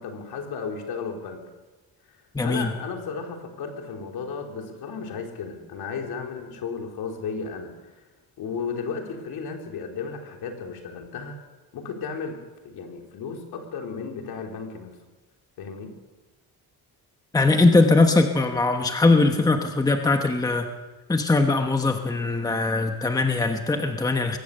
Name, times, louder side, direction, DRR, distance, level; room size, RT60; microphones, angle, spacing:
voice 1, 0.0-1.4 2.4-8.0 8.4-11.4 11.7-12.4 12.6-14.9 15.6-15.9, left 5 dB, 75° left, 2 dB, 3.9 m, -34 dB
voice 2, 2.3-2.7 17.3-20.7 21.1-24.4, left 3 dB, 10° left, 5 dB, 1.1 m, -21 dB
22.5 x 17.0 x 6.7 m, 1.2 s
cardioid pair, 175°, 38 cm